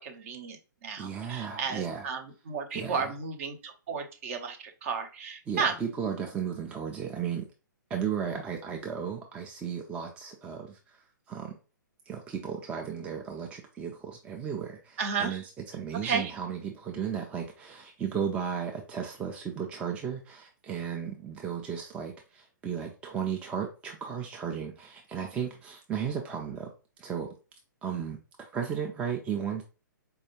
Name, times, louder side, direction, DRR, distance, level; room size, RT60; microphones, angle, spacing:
voice 1, 0.0-5.8 15.0-15.4 16.0-16.3, right 6 dB, 40° right, 5 dB, 0.7 m, -33 dB
voice 2, 1.0-2.1 2.7-3.1 5.5-7.5 7.9-11.0 11.3-11.6 12.1-15.4 15.7-26.7 27.0-27.3 27.8-29.6, right 7 dB, 10° right, 2 dB, 0.4 m, -35 dB
4.4 x 2.3 x 3.0 m, 0.33 s
figure-of-eight pair, 120°, 11 cm